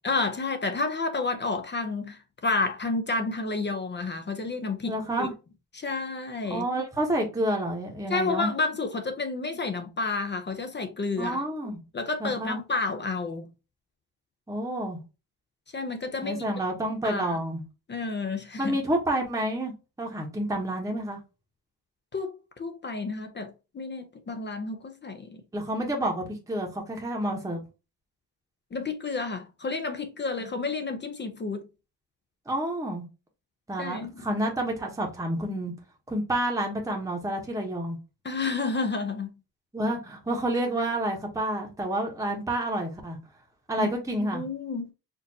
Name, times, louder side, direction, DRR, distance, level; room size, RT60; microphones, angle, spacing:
voice 1, 0.0-4.9 5.2-5.3 5.7-6.7 8.1-11.4 11.9-13.5 15.7-16.4 17.0-17.4 17.9-18.8 22.1-25.4 28.7-31.6 33.8-34.3 38.2-39.3 43.8-43.9 44.2-44.8, left 3 dB, 30° left, 0.5 m, -30 dB
voice 2, 4.9-5.3 6.5-8.5 11.2-11.8 12.2-12.6 14.5-15.0 16.2-17.6 18.6-19.7 20.0-21.2 25.5-27.6 32.5-33.0 33.7-35.7 36.1-38.0 39.7-43.2 43.7-44.4, right 1 dB, 10° right, 0.9 m, -29 dB
4.4 x 2.6 x 2.7 m
cardioid pair, 135°, 39 cm